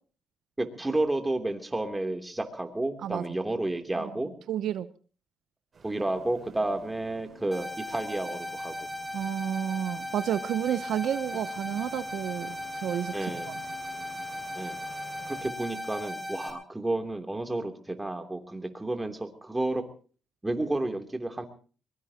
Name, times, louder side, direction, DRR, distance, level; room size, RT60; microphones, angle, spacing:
voice 1, 0.6-4.3 5.8-8.9 13.1-13.5 14.6-14.8 15.3-19.8 20.4-21.5, right 2 dB, 15° right, 6 dB, 3.0 m, -31 dB
voice 2, 4.5-4.9 9.1-13.6, right 10 dB, 75° right, 13 dB, 0.8 m, -31 dB
sound 1, 5.7-15.4, right 1 dB, 40° right, 6.0 m, -52 dB
sound 2, 7.5-16.5, left 1 dB, 5° left, 6.1 m, -37 dB
22.5 x 22.0 x 2.9 m, 0.40 s
cardioid pair, 90°, 0 cm